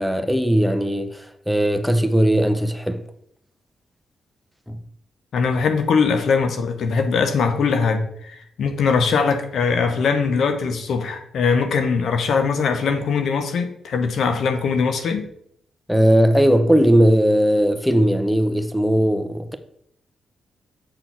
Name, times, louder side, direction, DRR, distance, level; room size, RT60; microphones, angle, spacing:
voice 1, 0.0-3.0 4.7-4.8 15.9-19.6, equal, ahead, 1.0 m, -18 dB
voice 2, 5.3-15.2, left 5 dB, 70° left, 1.0 m, -21 dB
7.7 x 4.4 x 5.9 m
supercardioid pair, 50°, 0 cm